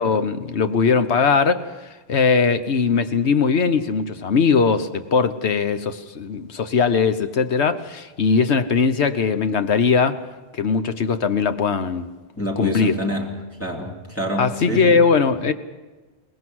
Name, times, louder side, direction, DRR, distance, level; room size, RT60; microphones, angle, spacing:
voice 1, 0.0-1.7 2.1-10.2 10.6-12.1 12.6-12.9 14.4-15.5, left 5 dB, 75° left, 1.3 m, -20 dB
voice 2, 12.4-13.3 13.6-15.0, equal, 10° left, 2.9 m, -27 dB
23.0 x 19.5 x 6.3 m
omnidirectional pair, 1.1 m